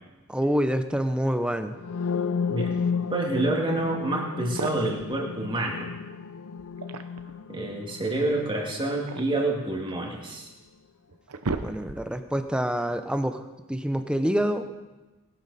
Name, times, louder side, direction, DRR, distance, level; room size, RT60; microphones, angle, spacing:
voice 1, 0.3-1.8 11.6-13.4 13.7-14.7, equal, 5° right, 8 dB, 0.8 m, -26 dB
sound 1, 1.8-9.6, left 5 dB, 70° left, 0.5 m, -33 dB
voice 2, 3.1-5.9 7.5-10.5, right 2 dB, 20° right, -1 dB, 2.5 m, -28 dB
sound 2, 4.0-4.1 4.4-5.1 6.6-7.4 8.7-10.1 10.7-10.8 11.1-12.3, right 3 dB, 75° right, 0.8 m, -35 dB
20.0 x 12.0 x 4.2 m, 1.1 s
head